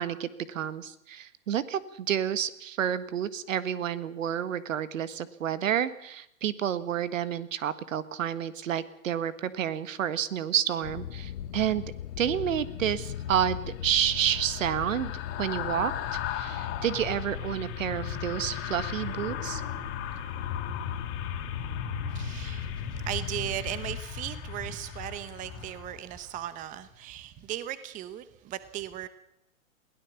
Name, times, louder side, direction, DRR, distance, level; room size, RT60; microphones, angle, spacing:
voice 1, 0.0-11.9 12.2-15.1 15.4-15.9 16.3-19.6, right 9 dB, 70° right, 15 dB, 1.7 m, -30 dB
sound 1, 10.8-24.0, left 10 dB, 80° left, 1.3 m, -38 dB
sound 2, 13.1-26.4 26.7-26.9, left 8 dB, 30° left, 3.1 m, -37 dB
voice 2, 22.1-29.1, right 13 dB, 20° right, 14 dB, 0.9 m, -37 dB
22.0 x 17.0 x 7.1 m, 0.76 s
hypercardioid pair, 140°, 40 cm